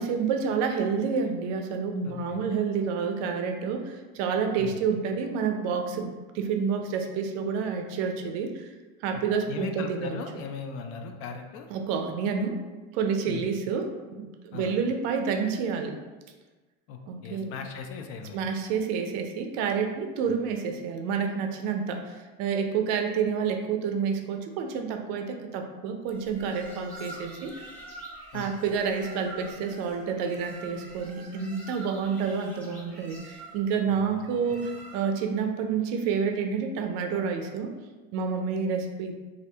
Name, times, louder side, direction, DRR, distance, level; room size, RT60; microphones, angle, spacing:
voice 1, 0.0-8.7 9.0-10.2 11.7-12.6 12.9-16.0 17.1-17.5 18.3-27.5 28.3-37.7 38.1-39.1, right 6 dB, 60° right, 5 dB, 0.5 m, -29 dB
voice 2, 2.0-2.4 4.6-4.8 9.5-11.7 13.3-13.5 14.5-14.8 16.9-18.4 20.2-20.4 28.3-28.5 33.9-34.2, left 5 dB, 50° left, 5 dB, 0.4 m, -38 dB
sound 1, 26.1-35.3, right 2 dB, 5° left, 1.0 m, -46 dB
2.6 x 2.4 x 3.3 m, 1.2 s
supercardioid pair, 115°, 30 cm